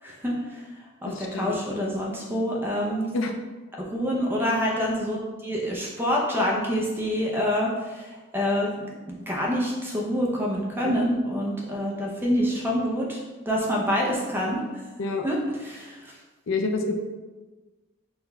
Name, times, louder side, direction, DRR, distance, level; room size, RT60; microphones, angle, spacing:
voice 1, 0.0-0.6 1.0-3.1 3.8-8.7 9.3-14.6 15.2-15.4 15.6-16.1, equal, 10° right, -2 dB, 0.5 m, -26 dB
voice 2, 1.1-1.6 3.1-3.3 10.8-10.9 15.0-15.3 16.5-17.0, left 3 dB, 60° left, 4 dB, 0.4 m, -28 dB
4.0 x 2.2 x 4.0 m, 1.2 s
head